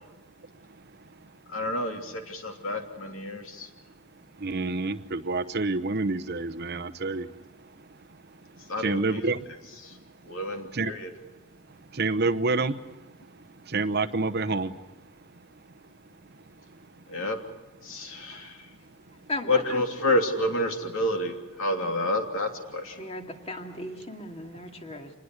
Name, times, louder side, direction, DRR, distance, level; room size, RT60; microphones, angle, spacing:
voice 1, 1.5-3.7 8.7-9.3 9.8-10.0 10.2-11.1 17.1-17.4 17.8-18.6 19.5-23.0, left 1 dB, 65° left, 3 dB, 3.1 m, -29 dB
voice 2, 4.4-7.3 8.8-9.4 10.7-10.9 12.0-12.7 13.7-14.7, right 3 dB, 45° right, 11 dB, 0.9 m, -27 dB
voice 3, 19.3-19.6 23.0-25.1, left 1 dB, 30° left, 3 dB, 2.4 m, -36 dB
26.5 x 20.5 x 8.1 m, 1.0 s
head